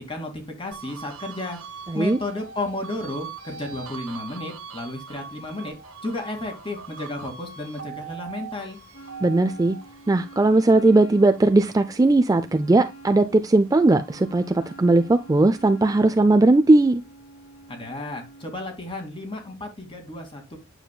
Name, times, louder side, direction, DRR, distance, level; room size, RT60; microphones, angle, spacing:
voice 1, 0.0-1.6 1.9-5.8 6.0-8.8 17.7-20.6, left 2 dB, 25° left, 2.2 m, -33 dB
sound 1, 0.7-13.3 13.7-15.4, right 6 dB, 85° right, 1.3 m, -42 dB
voice 2, 1.9-2.2 9.2-9.8 10.1-17.0, right 2 dB, 15° right, 0.4 m, -18 dB
Wind instrument woodwind instrument, 8.9-18.5, right 2 dB, 65° left, 2.6 m, -46 dB
9.2 x 7.1 x 2.2 m
head